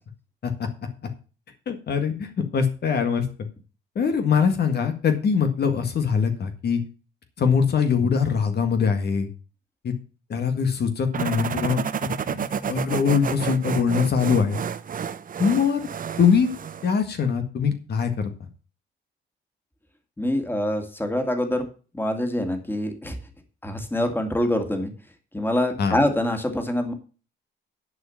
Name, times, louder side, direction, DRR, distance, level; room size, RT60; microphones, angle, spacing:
voice 1, 1.7-3.3 4.0-6.8 7.4-9.3 9.8-9.9 10.3-12.4 12.7-14.6 15.4-15.8 16.2-16.5 16.8-18.3 25.8-26.0, left 6 dB, 55° left, 6 dB, 1.8 m, -22 dB
sound 1, 11.1-16.9, right 7 dB, 45° right, 0.9 m, -30 dB
voice 2, 20.2-21.7 21.9-23.2 23.6-24.9 25.3-26.9, left 1 dB, 10° left, 5 dB, 2.4 m, -25 dB
10.5 x 5.1 x 7.2 m, 0.36 s
cardioid pair, 90°, 20 cm